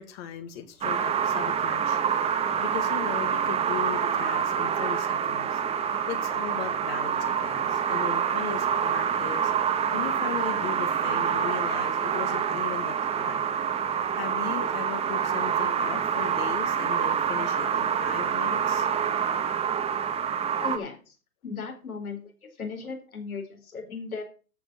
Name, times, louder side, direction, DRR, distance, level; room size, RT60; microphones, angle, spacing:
voice 1, 0.0-2.0 2.6-5.6 6.1-9.5 9.9-13.4 14.1-18.9, left 9 dB, 45° left, 1.8 m, -38 dB
sound 1, 0.8-20.8, right 7 dB, 15° right, 1.1 m, -27 dB
voice 2, 20.6-21.1 21.4-22.2 22.6-24.2, left 5 dB, 70° left, 4.0 m, -36 dB
13.0 x 5.1 x 6.1 m
hypercardioid pair, 120°, 44 cm